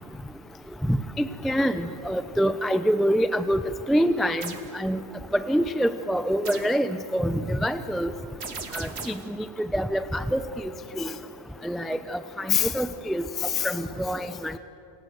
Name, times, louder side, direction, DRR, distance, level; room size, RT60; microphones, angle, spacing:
voice 1, 0.9-3.6 3.9-5.0 5.3-8.1 8.7-9.1 9.7-10.7 11.0-11.1 11.6-14.6, equal, ahead, 10 dB, 0.5 m, -25 dB
sound 1, 4.4-4.7 6.5-6.8 8.4-9.3, right 4 dB, 80° right, 1.8 m, -37 dB
28.5 x 24.0 x 8.0 m, 2.9 s
omnidirectional pair, 1.1 m